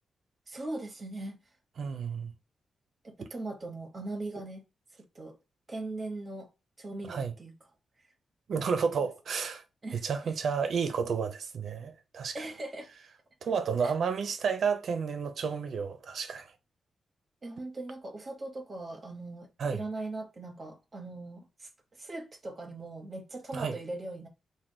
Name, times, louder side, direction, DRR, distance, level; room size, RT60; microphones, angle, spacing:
voice 1, 0.5-1.4 3.0-4.6 5.1-5.4 5.7-6.5 6.8-7.5 8.6-9.1 9.8-10.3 12.3-12.9 13.8-13.9 17.4-21.7 22.0-24.3, right 2 dB, 40° right, 0.8 m, -40 dB
voice 2, 1.8-2.3 7.0-7.3 8.5-9.6 9.9-12.5 13.4-16.5 19.6-19.8 23.5-23.8, right 6 dB, 70° right, 0.6 m, -31 dB
3.0 x 2.2 x 3.5 m
cardioid pair, 70°, 0 cm